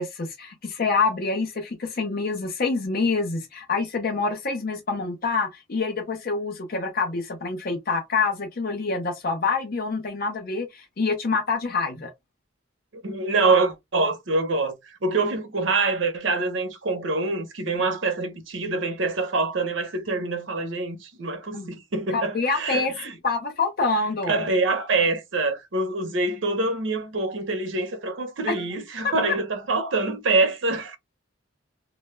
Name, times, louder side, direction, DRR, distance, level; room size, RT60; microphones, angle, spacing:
voice 1, 0.0-12.1 17.8-18.0 21.5-21.7 22.1-22.9 23.2-24.4 28.5-28.6 29.0-29.1, left 4 dB, 45° left, 0.5 m, -26 dB
voice 2, 12.9-14.7 15.0-23.1 24.3-31.0, right 3 dB, 70° right, 0.7 m, -25 dB
2.2 x 2.0 x 3.0 m
head